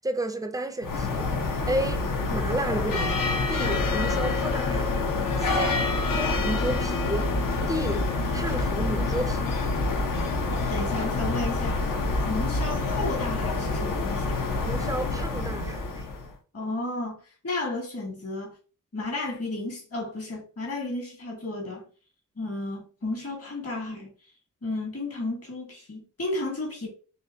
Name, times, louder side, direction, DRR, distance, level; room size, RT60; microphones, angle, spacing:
voice 1, 0.0-1.3 1.6-7.3 7.7-9.6 14.6-16.1, right 1 dB, 10° right, 0.4 m, -32 dB
sound 1, 0.8-16.3, left 3 dB, 75° left, 0.8 m, -27 dB
voice 2, 10.7-11.8 12.3-14.4 16.5-18.5 18.9-21.9 22.4-24.1 24.6-26.9, left 2 dB, 45° left, 1.6 m, -33 dB
4.3 x 2.8 x 2.7 m
wide cardioid pair, 150°, 33 cm